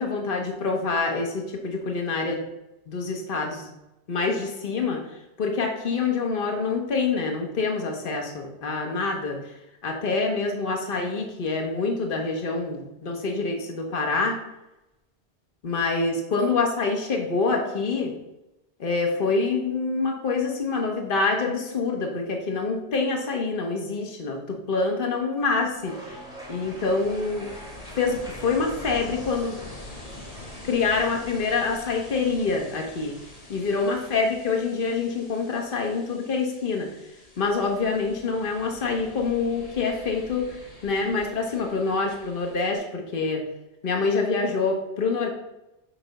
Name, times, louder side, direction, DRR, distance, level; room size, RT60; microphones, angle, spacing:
voice 1, 0.0-2.4 2.9-3.7 4.1-5.0 5.4-9.5 9.8-14.4 15.6-18.1 18.8-26.2 26.5-27.5 27.9-29.6 30.6-36.9 37.4-43.5 43.8-45.3, left 4 dB, 55° left, 2 dB, 1.3 m, -26 dB
Ocean, 25.4-42.8, left 2 dB, 35° left, 1.4 m, -45 dB
sound 1, 25.8-31.2, right 1 dB, 5° right, 1.5 m, -44 dB
8.4 x 3.4 x 5.2 m, 0.92 s
omnidirectional pair, 1.1 m